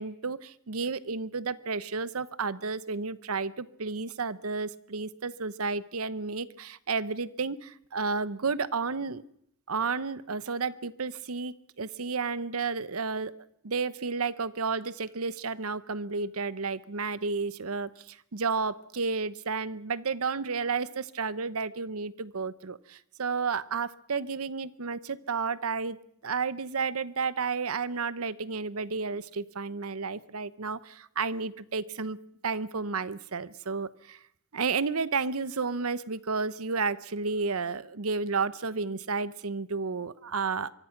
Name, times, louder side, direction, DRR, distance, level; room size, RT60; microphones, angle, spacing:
voice 1, 0.0-9.2 9.7-13.3 13.6-26.0 26.2-32.2 32.4-34.2 34.5-40.7, right 4 dB, 75° right, 16 dB, 0.9 m, -32 dB
24.5 x 23.5 x 5.9 m, 0.72 s
head